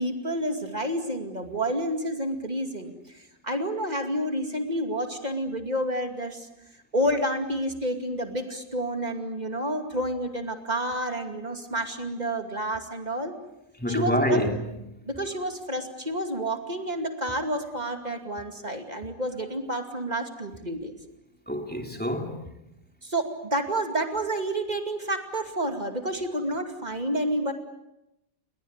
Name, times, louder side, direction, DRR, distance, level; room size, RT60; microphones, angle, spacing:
voice 1, 0.0-6.5 6.9-13.3 13.9-14.4 15.0-20.9 23.0-27.5, right 1 dB, 25° right, 2.5 m, -29 dB
voice 2, 13.8-14.7 21.5-22.4, equal, 5° left, 2.8 m, -26 dB
29.5 x 21.5 x 8.1 m
omnidirectional pair, 1.7 m